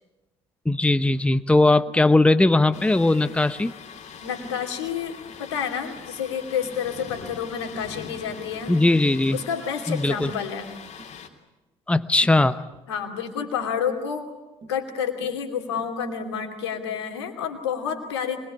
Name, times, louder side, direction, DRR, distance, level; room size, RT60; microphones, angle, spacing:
voice 1, 0.6-3.7 8.7-9.4 9.9-10.3 11.9-12.7, left 2 dB, 10° left, 13 dB, 0.9 m, -19 dB
Tap, 1.1-1.2 1.9-2.1 2.7-3.0 3.3-3.5 3.9-4.1 4.5-4.7 5.3-5.5 6.0-6.2 6.6-6.9 7.4-7.7 8.1-8.3 8.8-9.0 9.4-9.6 10.3-10.5 11.0-11.2 12.2-12.5 13.6-13.8 14.6-14.8 15.2-15.4 15.8-16.0, right 3 dB, 45° right, 7.5 m, -48 dB
Thunder, 2.7-11.3, left 7 dB, 55° left, 3.1 m, -42 dB
voice 2, 4.2-8.7 9.3-10.7 12.9-14.3 14.7-18.4, left 7 dB, 90° left, 5 dB, 2.7 m, -29 dB
25.0 x 21.5 x 9.8 m, 1.0 s
hypercardioid pair, 60°, 14 cm